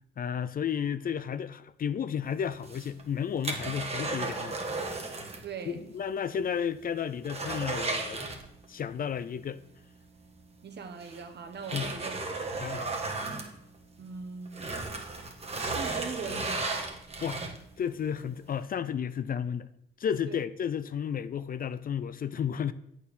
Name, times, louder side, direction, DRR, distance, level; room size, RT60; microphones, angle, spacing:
voice 1, 0.2-4.6 5.7-8.2 8.7-9.6 11.7-11.9 12.6-12.9 17.2-17.4 17.8-19.7 20.0-22.7, left 8 dB, 45° left, 0.5 m, -32 dB
sound 1, 2.5-5.5 5.8-5.9 6.4-6.5 6.8-8.8 10.3-10.4 11.0-14.1 14.5-17.8 18.3-18.4, right 3 dB, 30° right, 1.6 m, -34 dB
voice 2, 5.4-5.9 10.6-12.6 14.0-14.8 15.6-16.7 20.2-20.4, right 5 dB, 55° right, 1.3 m, -41 dB
8.1 x 4.5 x 6.9 m
cardioid pair, 80°, 21 cm